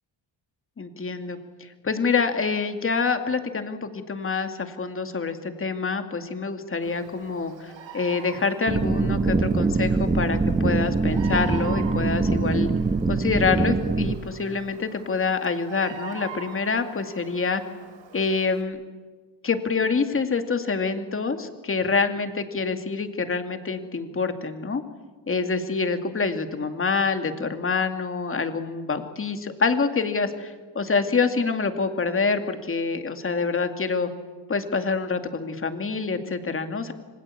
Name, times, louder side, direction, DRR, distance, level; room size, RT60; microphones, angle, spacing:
voice 1, 0.8-12.7 13.1-17.6 18.1-18.8 19.4-24.8 25.3-34.1 34.5-36.9, left 4 dB, 30° left, 7 dB, 2.5 m, -26 dB
Bird vocalization bird call bird song, 6.8-18.6, right 7 dB, 85° right, 3.9 m, -44 dB
sound 1, 8.7-14.1, right 3 dB, 15° right, 1.2 m, -23 dB
27.5 x 25.0 x 8.6 m, 1.4 s
wide cardioid pair, 165°, 44 cm